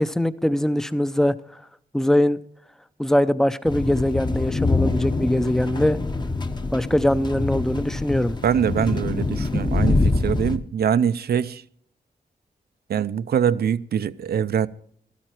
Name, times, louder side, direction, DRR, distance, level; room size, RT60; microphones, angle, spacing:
voice 1, 0.0-1.4 1.9-2.4 3.0-6.0 6.7-8.4, left 1 dB, 5° left, 0.5 m, -22 dB
sound 1, 3.7-10.6, left 3 dB, 30° left, 0.9 m, -25 dB
voice 2, 8.4-11.6 12.9-14.7, right 8 dB, 80° right, 0.5 m, -23 dB
13.5 x 13.5 x 4.4 m
wide cardioid pair, 145°, 16 cm